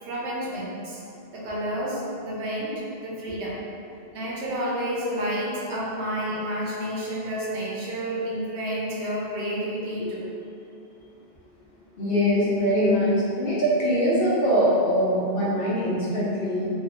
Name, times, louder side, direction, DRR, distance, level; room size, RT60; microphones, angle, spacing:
voice 1, 0.0-1.0 1.3-3.6 4.1-10.3, equal, 85° right, -5 dB, 1.0 m, -30 dB
voice 2, 12.0-16.7, equal, 60° left, -8 dB, 1.0 m, -22 dB
3.5 x 2.4 x 2.4 m, 2.6 s
omnidirectional pair, 1.1 m